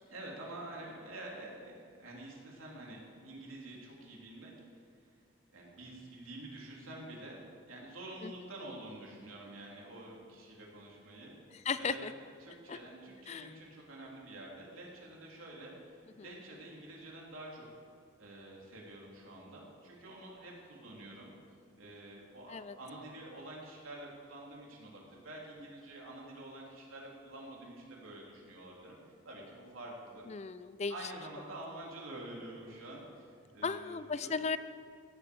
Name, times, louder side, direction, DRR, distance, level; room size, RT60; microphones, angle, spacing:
voice 1, 0.1-4.8 5.5-11.4 11.7-17.7 18.2-21.3 21.8-29.0 29.2-30.2 30.9-34.3, right 1 dB, 85° right, -3 dB, 3.4 m, -48 dB
voice 2, 11.5-12.1 12.7-12.8 13.3-13.5 16.2-16.3 22.5-22.8 30.3-30.9 33.6-34.6, left 5 dB, 30° left, 14 dB, 0.4 m, -36 dB
16.0 x 8.1 x 7.0 m, 2.1 s
head